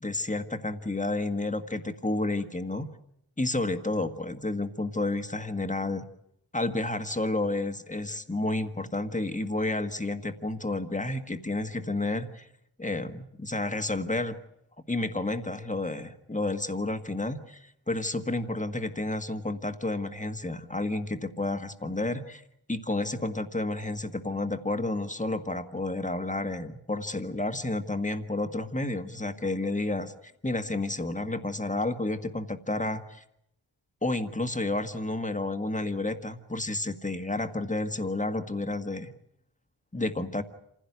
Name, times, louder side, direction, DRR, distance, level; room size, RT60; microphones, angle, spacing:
voice 1, 0.0-2.9 3.4-6.0 6.5-12.5 12.8-14.4 14.9-22.4 22.7-30.1 30.4-33.2 34.0-39.1 39.9-40.4, left 2 dB, 15° left, 7 dB, 1.7 m, -31 dB
27.5 x 16.0 x 9.6 m, 0.77 s
wide cardioid pair, 105°, 50 cm